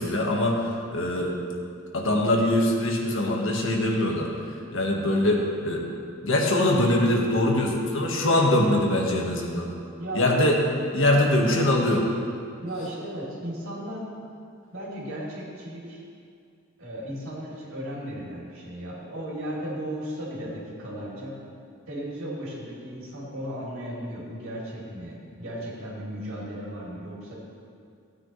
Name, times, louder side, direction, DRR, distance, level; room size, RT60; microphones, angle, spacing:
voice 1, 0.0-1.3 1.9-4.3 4.7-5.8 6.2-9.7 10.1-10.6 10.9-12.0, left 1 dB, 65° left, -1 dB, 1.6 m, -23 dB
voice 2, 10.0-10.3 12.6-14.0 14.7-16.0 16.8-21.5 21.9-27.3, right 1 dB, 75° right, -6 dB, 3.3 m, -35 dB
16.5 x 9.0 x 3.3 m, 2.3 s
head